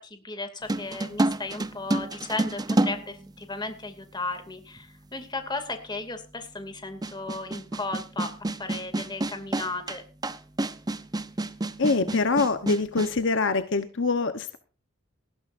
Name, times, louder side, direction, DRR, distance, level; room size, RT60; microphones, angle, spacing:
voice 1, 0.0-10.0, left 3 dB, 20° left, 7 dB, 2.5 m, -35 dB
sound 1, 0.7-3.9 4.8-4.9 7.0-13.2, right 2 dB, 20° right, 0.8 m, -29 dB
voice 2, 11.8-14.6, left 3 dB, 60° left, 9 dB, 1.0 m, -24 dB
19.0 x 15.0 x 2.6 m, 0.36 s
head